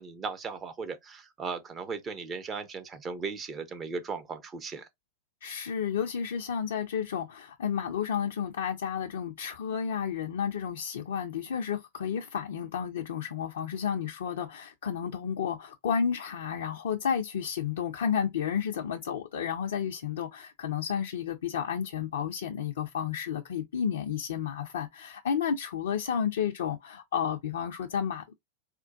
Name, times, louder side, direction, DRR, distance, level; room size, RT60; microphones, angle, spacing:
voice 1, 0.0-4.9, right 4 dB, 25° right, 0.6 m, -37 dB
voice 2, 5.4-28.3, left 7 dB, 60° left, 0.4 m, -31 dB
4.3 x 2.1 x 2.4 m
figure-of-eight pair, 90°, 0 cm